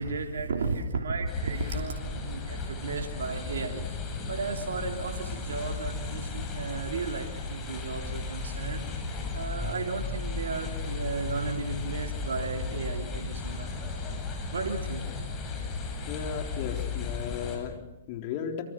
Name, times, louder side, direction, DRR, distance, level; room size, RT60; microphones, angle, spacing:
voice 1, 0.0-4.0 4.3-8.9 9.3-13.7 14.5-15.0, right 4 dB, 80° right, 2 dB, 3.1 m, -34 dB
sound 1, 1.3-17.6, left 4 dB, 25° left, 7.8 m, -35 dB
voice 2, 16.1-18.6, left 7 dB, 45° left, 4 dB, 4.0 m, -35 dB
27.5 x 25.0 x 6.3 m, 1.0 s
hypercardioid pair, 125°, 0 cm